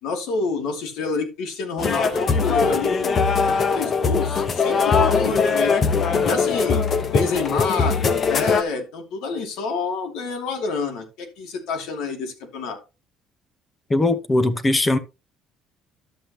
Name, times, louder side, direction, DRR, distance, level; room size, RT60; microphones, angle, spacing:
voice 1, 0.0-5.8 6.2-12.8, left 4 dB, 80° left, 2.7 m, -28 dB
sound 1, 1.8-8.6, left 5 dB, 35° left, 1.0 m, -21 dB
voice 2, 13.9-15.0, left 2 dB, 15° left, 0.8 m, -20 dB
11.5 x 7.6 x 3.0 m
cardioid pair, 135°, 0 cm